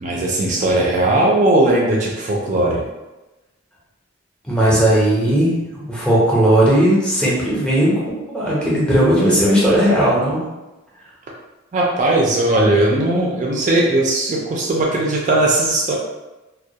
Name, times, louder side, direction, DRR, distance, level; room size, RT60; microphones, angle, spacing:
voice 1, 0.0-2.8 11.7-15.9, right 2 dB, 35° right, -2 dB, 0.3 m, -18 dB
voice 2, 4.4-5.6 5.9-8.0 8.3-10.4, right 1 dB, 5° left, -7 dB, 0.6 m, -16 dB
2.2 x 2.2 x 2.7 m, 1.1 s
head